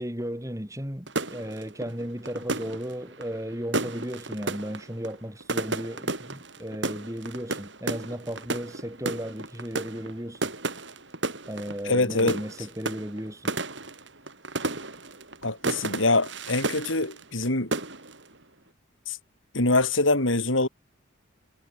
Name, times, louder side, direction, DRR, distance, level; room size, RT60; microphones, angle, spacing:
voice 1, 0.0-10.4 11.5-13.5, equal, 15° right, 7.8 m, -35 dB
sound 1, 1.1-17.5 17.7-18.3, right 2 dB, 65° right, 6.6 m, -33 dB
voice 2, 11.9-12.4 15.4-17.7 19.1-19.2 19.5-20.7, left 2 dB, 80° left, 5.7 m, -24 dB
head